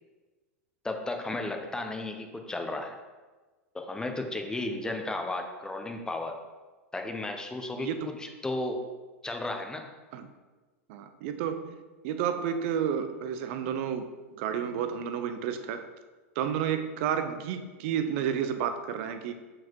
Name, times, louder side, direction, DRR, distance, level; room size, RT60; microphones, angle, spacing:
voice 1, 0.8-3.0 3.7-6.3 6.9-7.9 8.2-8.8 9.2-9.9, left 2 dB, 10° left, 4 dB, 0.8 m, -34 dB
voice 2, 7.8-8.1 10.1-10.3 10.9-11.8 12.0-14.1 14.4-15.8 16.4-19.3, right 8 dB, 60° right, 8 dB, 0.7 m, -31 dB
5.9 x 4.9 x 4.6 m, 1.3 s
hypercardioid pair, 110°, 8 cm